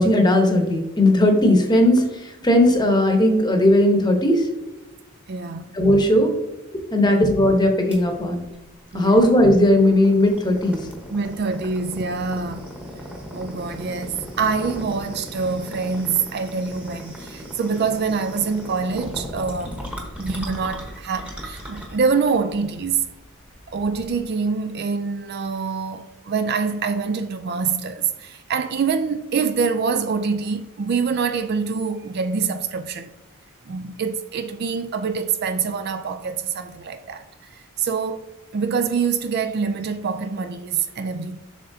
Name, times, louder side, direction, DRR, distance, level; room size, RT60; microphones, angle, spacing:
voice 1, 0.0-4.5 5.7-6.3 6.9-8.5 8.9-10.9, left 1 dB, 20° left, 0.9 m, -17 dB
voice 2, 5.3-5.7 7.0-7.2 8.9-9.3 11.1-12.7 13.3-19.8 20.2-23.1 23.7-33.1 33.7-37.3 37.5-41.4, right 5 dB, 45° right, 0.3 m, -25 dB
sound 1, 7.9-24.2, equal, 5° right, 1.0 m, -37 dB
7.4 x 5.6 x 2.7 m
head